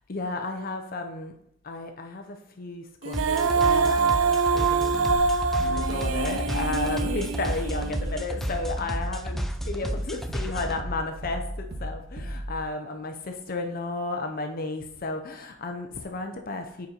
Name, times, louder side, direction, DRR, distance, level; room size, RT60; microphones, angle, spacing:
voice 1, 0.1-1.3 1.6-5.2 5.6-16.9, left 2 dB, 45° left, 5 dB, 0.6 m, -33 dB
Female singing, 3.0-8.2, right 4 dB, 80° right, 0.5 m, -25 dB
sound 1, 3.1-10.8, equal, ahead, 0.5 m, -32 dB
sound 2, 5.1-12.6, equal, 50° right, 1.6 m, -36 dB
7.2 x 5.2 x 4.3 m, 0.76 s
head